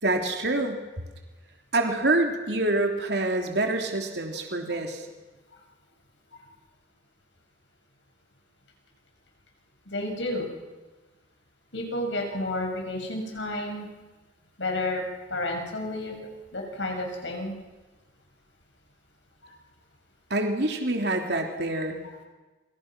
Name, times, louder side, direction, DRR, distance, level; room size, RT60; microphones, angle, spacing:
voice 1, 0.0-0.8 1.7-5.1 20.3-22.0, right 2 dB, 65° right, 3 dB, 3.1 m, -26 dB
voice 2, 9.9-10.5 11.7-13.9 14.6-15.0 15.3-16.2 16.5-17.5, left 2 dB, 80° left, 2 dB, 6.6 m, -31 dB
29.0 x 25.5 x 6.1 m, 1.2 s
head